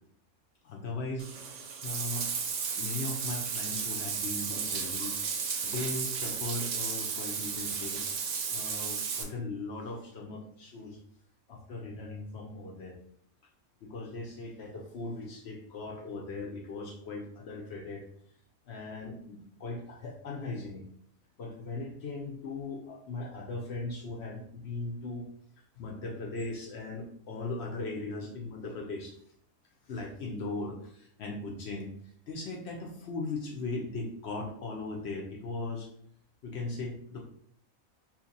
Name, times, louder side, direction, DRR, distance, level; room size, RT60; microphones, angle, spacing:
voice 1, 0.6-2.3 2.8-5.1 5.6-8.0 8.5-11.0 11.5-13.0 13.8-18.0 18.7-20.8 21.4-25.3 25.8-29.1 29.9-31.9 32.3-35.9 36.4-37.3, left 3 dB, 60° left, 0 dB, 0.7 m, -38 dB
Bathtub (filling or washing), 1.2-9.2, right 6 dB, 65° right, 0.8 m, -34 dB
2.7 x 2.5 x 3.9 m, 0.65 s
omnidirectional pair, 1.5 m